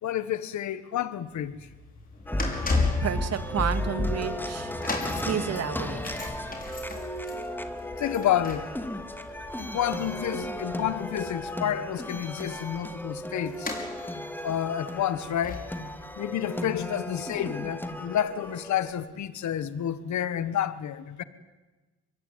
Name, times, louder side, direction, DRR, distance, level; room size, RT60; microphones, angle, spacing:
voice 1, 0.0-1.6 8.0-8.7 9.6-13.7 14.2-15.7 16.2-21.2, left 10 dB, 70° left, 1.6 m, -29 dB
sound 1, 1.3-17.7 17.9-18.2 19.0-19.1, left 3 dB, 30° left, 5.8 m, -36 dB
sound 2, 2.3-18.9, left 1 dB, 5° left, 2.5 m, -35 dB
voice 2, 3.0-4.7 5.3-6.0, right 7 dB, 55° right, 2.3 m, -30 dB
24.5 x 22.0 x 9.4 m
cardioid pair, 90°, 30 cm